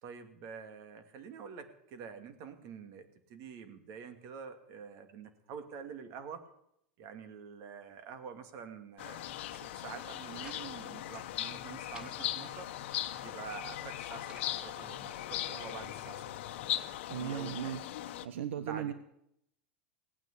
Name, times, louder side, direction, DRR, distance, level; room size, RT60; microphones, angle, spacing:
voice 1, 0.0-6.4 7.0-12.7 13.2-16.2 17.1-17.8 18.6-18.9, right 6 dB, 50° right, 8 dB, 2.4 m, -47 dB
sound 1, 9.0-18.2, left 13 dB, 70° left, 1.1 m, -39 dB
sound 2, 9.2-9.6 10.0-10.6 10.9-11.0 11.4-12.1 12.6-13.3 13.9-14.5 15.2-15.9, equal, 10° right, 4.0 m, -57 dB
voice 2, 17.1-17.9 18.2-18.9, right 9 dB, 80° right, 11 dB, 1.0 m, -37 dB
18.0 x 9.1 x 8.4 m, 0.76 s
hypercardioid pair, 110°, 7 cm